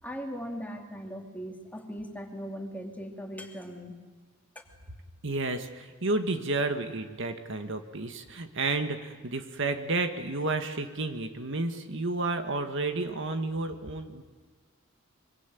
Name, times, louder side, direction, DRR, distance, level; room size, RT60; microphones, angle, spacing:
voice 1, 0.0-4.0, equal, 10° left, 2 dB, 2.9 m, -39 dB
voice 2, 5.2-14.2, right 3 dB, 65° right, 7 dB, 1.8 m, -31 dB
25.0 x 24.0 x 9.3 m, 1.4 s
head